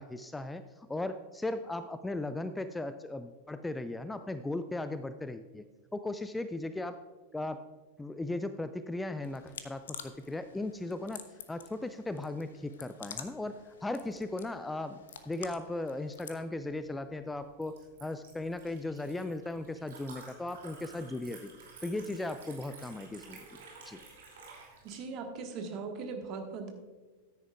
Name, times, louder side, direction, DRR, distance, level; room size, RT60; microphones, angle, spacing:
voice 1, 0.0-5.6 5.9-7.0 7.3-7.7 8.0-21.5 21.8-23.6 23.8-24.0, left 2 dB, 10° left, 11 dB, 0.3 m, -37 dB
sound 1, 9.2-16.4, left 8 dB, 65° left, 0.7 m, -49 dB
Liquid, 16.6-25.0, right 4 dB, 60° right, 2.7 m, -53 dB
voice 2, 24.8-26.7, right 4 dB, 40° right, 4 dB, 1.5 m, -39 dB
14.0 x 9.9 x 2.4 m, 1.3 s
figure-of-eight pair, 90°, 0 cm